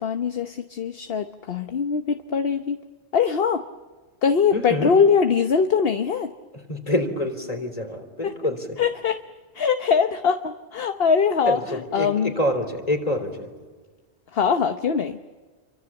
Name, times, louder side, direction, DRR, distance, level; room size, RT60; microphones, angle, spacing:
voice 1, 0.0-2.8 3.1-3.6 4.2-6.3 8.2-8.3 8.8-9.2 9.5-12.3 14.3-15.2, left 6 dB, 60° left, 8 dB, 1.2 m, -22 dB
voice 2, 4.5-4.9 6.5-8.8 11.5-13.5, left 1 dB, 35° left, 5 dB, 3.7 m, -27 dB
29.0 x 24.5 x 7.2 m, 1.4 s
omnidirectional pair, 1.1 m